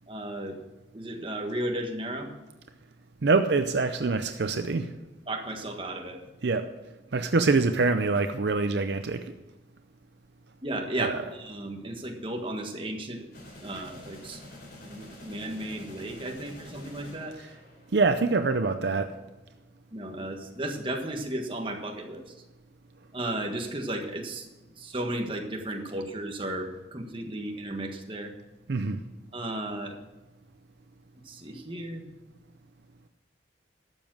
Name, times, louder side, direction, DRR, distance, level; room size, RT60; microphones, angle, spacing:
voice 1, 0.1-0.6 0.9-2.3 5.3-6.2 10.6-13.3 13.6-14.4 14.8-17.3 19.9-22.3 23.1-24.5 24.8-28.3 29.3-30.0 31.2-32.0, right 1 dB, 30° right, 3 dB, 1.5 m, -34 dB
voice 2, 3.2-4.9 6.4-6.7 7.1-9.2 11.0-11.2 13.7-13.8 17.4-17.5 17.9-19.1 28.7-29.0, right 3 dB, 65° right, 9 dB, 0.6 m, -25 dB
sound 1, 13.3-18.2, left 1 dB, 55° left, 4.4 m, -47 dB
12.5 x 7.2 x 6.2 m, 1.1 s
head